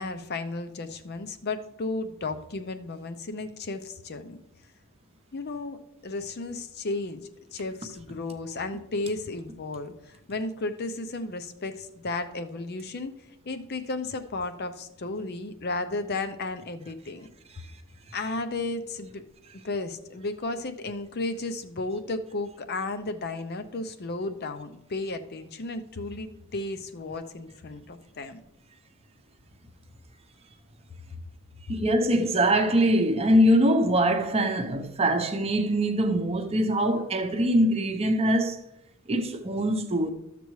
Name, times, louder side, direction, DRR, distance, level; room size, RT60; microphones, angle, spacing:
voice 1, 0.0-4.4 5.3-13.1 13.5-17.3 18.1-19.2 19.5-28.4, left 2 dB, 50° left, 0.6 m, -34 dB
voice 2, 31.7-38.6 39.1-40.1, equal, 30° right, 0.7 m, -23 dB
13.5 x 6.8 x 3.2 m
head